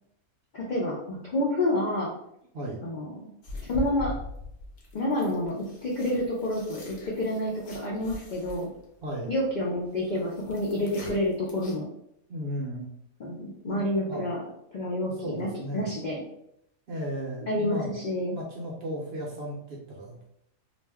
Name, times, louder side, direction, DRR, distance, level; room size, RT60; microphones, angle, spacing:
voice 1, 0.5-2.1 2.8-3.1 3.6-4.1 4.9-8.7 9.3-11.9 13.2-14.4 14.7-16.2 17.5-18.4, left 1 dB, 85° left, -3 dB, 0.4 m, -29 dB
sound 1, 3.4-11.7, left 1 dB, 50° left, 0.7 m, -41 dB
voice 2, 9.0-9.3 12.3-12.9 13.7-14.3 15.2-15.9 16.9-17.9 18.3-20.2, equal, 60° right, -2 dB, 0.7 m, -35 dB
2.5 x 2.1 x 3.4 m, 0.76 s
omnidirectional pair, 1.5 m